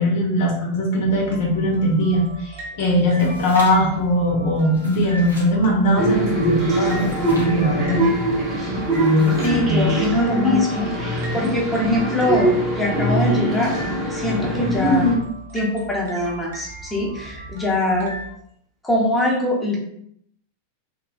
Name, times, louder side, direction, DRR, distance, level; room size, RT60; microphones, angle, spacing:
voice 1, 0.0-7.0 7.3-8.0 14.8-15.2, equal, 50° left, -1 dB, 0.6 m, -20 dB
sound 1, 1.0-18.3, right 2 dB, 60° right, 0.8 m, -39 dB
sound 2, 3.0-4.0 4.6-5.5 6.7-7.6 8.8-9.7, equal, 90° right, 0.9 m, -41 dB
sound 3, 6.0-15.1, equal, 25° right, 0.8 m, -22 dB
voice 2, 9.4-13.7 14.1-15.0 15.5-18.2 18.8-19.8, left 1 dB, 10° left, -4 dB, 0.7 m, -23 dB
3.1 x 2.1 x 2.3 m, 0.69 s
figure-of-eight pair, 90°, 0 cm